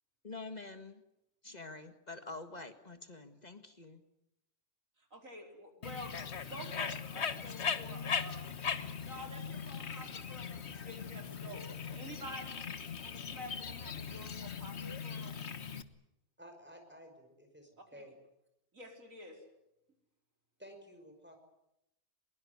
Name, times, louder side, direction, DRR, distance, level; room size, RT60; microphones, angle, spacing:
voice 1, 0.2-1.0 1.4-4.0, left 3 dB, 35° left, 8 dB, 1.7 m, -47 dB
voice 2, 5.1-6.1 6.4-8.5 9.0-11.6 11.9-12.7 13.0-15.4 18.0-18.1 18.7-19.4, equal, 90° right, 3 dB, 4.8 m, -49 dB
Bird, 5.8-15.8, left 6 dB, 60° left, 1.5 m, -39 dB
voice 3, 16.4-18.1 20.6-21.4, equal, 10° right, 5 dB, 5.6 m, -54 dB
22.5 x 22.0 x 9.5 m, 0.86 s
omnidirectional pair, 1.3 m